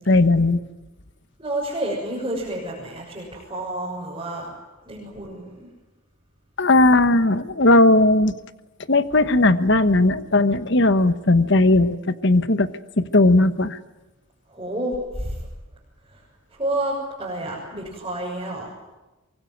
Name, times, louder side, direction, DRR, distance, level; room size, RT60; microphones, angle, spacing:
voice 1, 0.1-0.6 6.6-8.3 8.9-12.7 13.0-13.8, left 2 dB, 55° left, 12 dB, 1.2 m, -17 dB
voice 2, 1.4-4.5 4.8-5.7 14.5-15.4 16.1-16.2 16.6-18.7, right 1 dB, 20° right, -6 dB, 7.1 m, -29 dB
24.5 x 23.0 x 9.4 m, 1.1 s
head